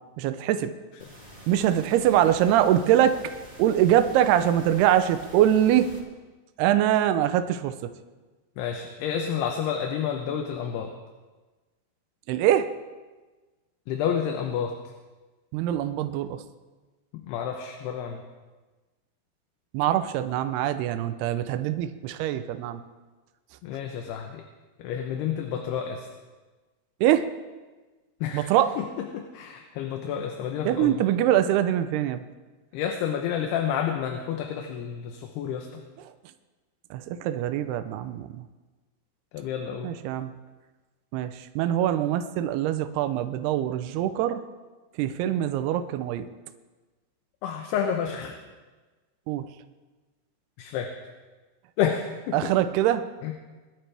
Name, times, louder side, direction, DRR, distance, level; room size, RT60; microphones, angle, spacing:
voice 1, 0.2-0.7 1.5-5.9 6.6-7.9 12.3-12.7 15.5-16.4 19.7-22.8 27.0-27.3 28.3-28.7 30.7-32.2 36.9-38.3 39.8-40.3 41.1-44.4 45.0-46.3 49.3-49.5 52.3-53.1, right 11 dB, 80° right, 10 dB, 2.7 m, -23 dB
sound 1, 1.0-6.0, right 1 dB, 15° right, 2.7 m, -47 dB
voice 2, 8.6-10.9 13.9-14.9 17.1-18.2 23.6-24.4 24.8-26.1 28.2-28.8 29.1-31.0 32.7-35.8 39.3-39.9 47.4-48.3 50.6-51.0 51.8-52.5 53.2-53.3, left 8 dB, 80° left, 3 dB, 3.0 m, -30 dB
22.5 x 12.5 x 3.4 m, 1.3 s
omnidirectional pair, 4.7 m